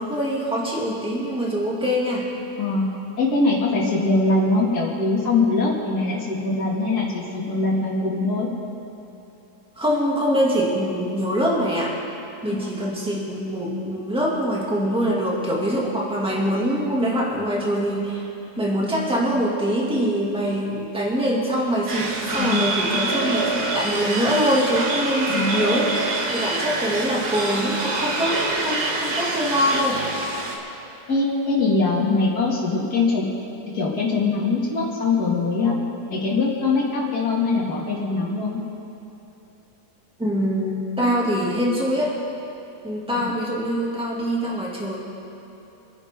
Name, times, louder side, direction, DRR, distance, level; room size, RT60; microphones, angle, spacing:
voice 1, 0.0-2.3 9.8-11.9 12.4-18.3 18.6-30.0 40.2-42.1 42.8-45.0, equal, 5° right, -5 dB, 2.4 m, -24 dB
voice 2, 3.2-8.5 12.8-12.9 22.3-23.0 25.3-25.8 31.1-33.2 33.7-35.8 36.1-38.6 43.1-43.4, left 3 dB, 80° left, -4 dB, 3.0 m, -22 dB
sound 1, 21.9-30.6, right 2 dB, 80° right, 2.1 m, -26 dB
27.0 x 10.5 x 3.8 m, 3.0 s
omnidirectional pair, 1.7 m